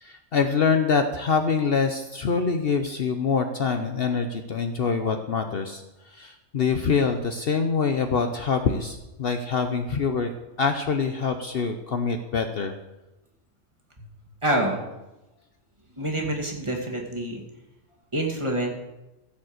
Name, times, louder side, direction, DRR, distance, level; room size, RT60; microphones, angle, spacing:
voice 1, 0.0-5.8 6.1-10.3 10.6-12.7, left 5 dB, 55° left, 6 dB, 0.9 m, -25 dB
voice 2, 14.4-14.8 16.0-17.4 18.1-18.7, right 1 dB, 25° right, -1 dB, 2.3 m, -26 dB
15.0 x 5.2 x 7.9 m, 0.98 s
omnidirectional pair, 1.3 m